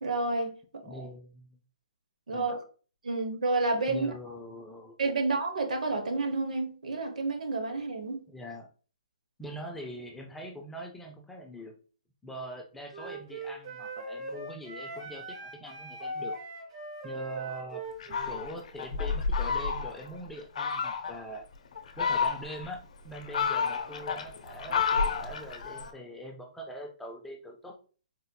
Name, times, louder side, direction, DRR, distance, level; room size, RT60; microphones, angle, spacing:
voice 1, 0.0-0.8 2.3-2.6 3.0-4.1 5.0-8.2, right 3 dB, 80° right, 0.9 m, -30 dB
voice 2, 0.8-1.6 2.3-2.5 3.9-5.0 8.3-8.7 9.4-11.8 12.2-16.3 17.0-21.4 22.0-27.7, equal, 5° left, 0.4 m, -43 dB
Wind instrument woodwind instrument, 12.9-18.4, right 2 dB, 40° right, 1.1 m, -40 dB
Fowl, 18.0-20.1 20.6-21.2 21.8-22.7 23.1-25.9, left 5 dB, 65° left, 0.6 m, -30 dB
4.2 x 2.7 x 2.2 m
hypercardioid pair, 155°, 4 cm